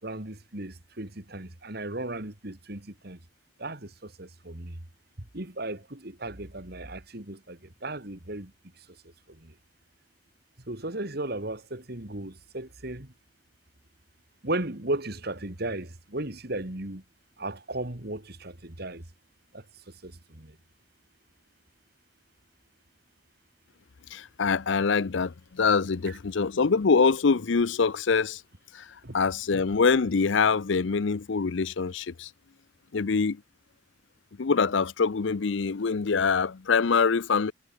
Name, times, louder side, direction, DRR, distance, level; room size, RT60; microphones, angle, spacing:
voice 1, 0.0-3.2 3.6-4.8 5.2-8.5 8.8-9.0 9.3-9.5 10.7-13.1 14.4-17.0 17.4-19.0 19.5-19.6 20.0-20.6 26.1-26.2 29.0-29.2, right 2 dB, 50° right, 2.5 m, -36 dB
voice 2, 24.1-28.4 28.7-28.9 29.1-32.3 32.9-33.4 34.4-37.5, left 5 dB, 65° left, 0.6 m, -24 dB
head